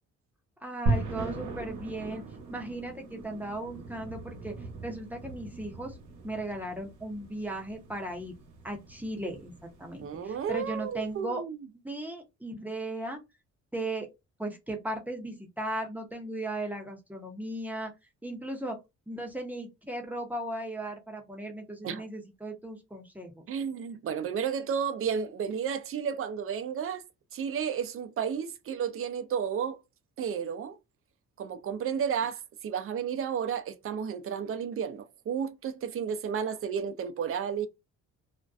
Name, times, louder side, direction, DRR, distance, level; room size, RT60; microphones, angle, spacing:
voice 1, 0.6-2.2 2.5-6.0 6.2-8.3 8.6-11.4 11.8-13.2 13.7-14.1 14.4-17.9 18.2-18.8 19.1-23.4, right 1 dB, 5° right, 0.6 m, -37 dB
sound 1, 0.9-11.1, right 2 dB, 80° right, 0.9 m, -38 dB
voice 2, 10.0-11.6 21.8-22.0 23.5-27.0 27.3-29.8 30.2-30.8 31.4-37.7, right 7 dB, 45° right, 0.4 m, -32 dB
2.5 x 2.2 x 2.4 m
cardioid pair, 90°, 30 cm